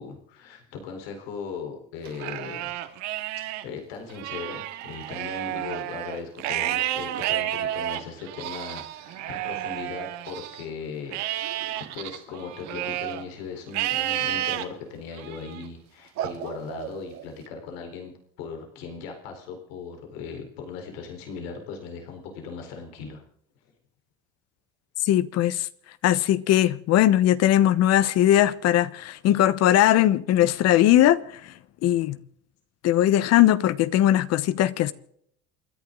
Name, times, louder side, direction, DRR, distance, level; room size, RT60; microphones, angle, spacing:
voice 1, 0.0-2.7 3.6-11.2 11.9-18.1 18.4-23.2, left 5 dB, 90° left, 4.1 m, -38 dB
Livestock farm animals working animals, 2.1-3.6 4.1-10.6 11.1-13.2 13.7-14.6 15.2-15.6 16.2-17.3, right 13 dB, 65° right, 1.9 m, -31 dB
voice 2, 25.0-25.7 26.0-31.5 31.8-32.2 32.8-34.9, left 12 dB, 55° left, 1.1 m, -20 dB
28.5 x 11.0 x 3.8 m
supercardioid pair, 110°, 30 cm